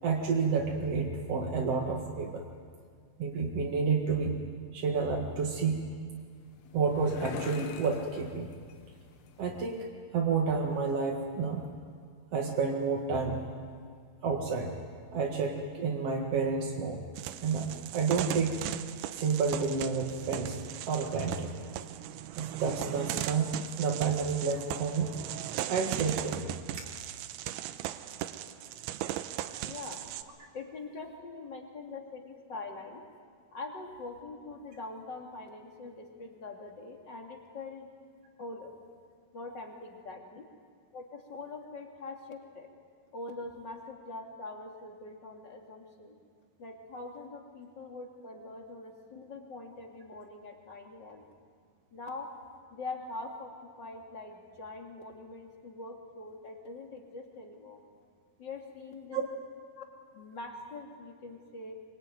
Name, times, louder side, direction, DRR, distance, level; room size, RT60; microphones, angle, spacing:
voice 1, 0.0-2.4 3.2-4.4 4.7-5.9 6.7-8.5 9.4-9.9 10.1-11.7 12.3-13.4 14.2-14.8 15.1-17.0 17.4-18.6 19.1-20.6 20.9-21.5 22.4-25.1 25.7-26.5 59.1-59.2, right 5 dB, 50° right, 0 dB, 2.1 m, -30 dB
sound 1, 6.1-9.8, left 7 dB, 70° left, 3.3 m, -46 dB
sound 2, 17.2-30.2, right 12 dB, 85° right, 3.2 m, -38 dB
voice 2, 29.6-30.0 30.5-33.0 33.5-37.9 38.4-38.7 39.3-40.5 40.9-42.7 43.1-46.2 46.6-51.2 51.9-52.3 52.7-57.8 58.4-59.2 59.8-59.9 60.1-61.8, left 3 dB, 30° left, 2 dB, 2.4 m, -43 dB
24.5 x 24.0 x 9.4 m, 2.1 s
omnidirectional pair, 5.1 m